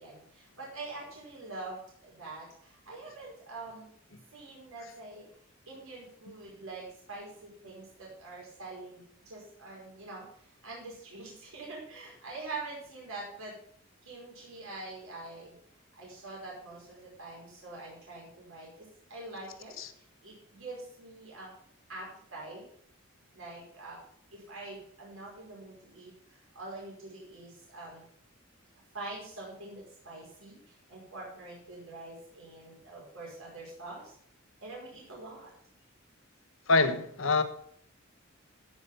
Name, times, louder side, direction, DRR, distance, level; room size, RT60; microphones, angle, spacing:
voice 1, 0.0-3.9 4.3-5.3 5.7-13.6 14.0-15.6 16.0-21.5 21.9-22.7 23.3-24.0 24.3-28.0 28.9-34.2 34.6-35.5, right 2 dB, 85° right, 5.2 m, -45 dB
voice 2, 36.7-37.4, left 3 dB, 75° left, 1.2 m, -25 dB
14.5 x 6.0 x 5.6 m
head